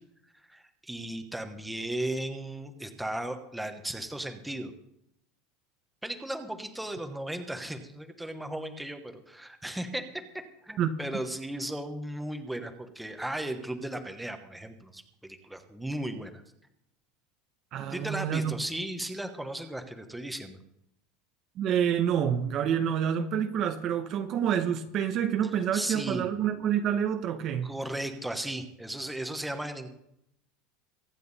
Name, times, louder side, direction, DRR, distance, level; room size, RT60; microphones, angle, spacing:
voice 1, 0.5-4.7 6.0-10.0 10.6-16.3 17.9-20.6 25.7-26.3 27.6-29.9, right 1 dB, 5° right, 1.1 m, -36 dB
voice 2, 17.7-18.6 21.6-27.7, right 8 dB, 30° right, 0.9 m, -28 dB
23.5 x 9.2 x 4.1 m
supercardioid pair, 175°, 0 cm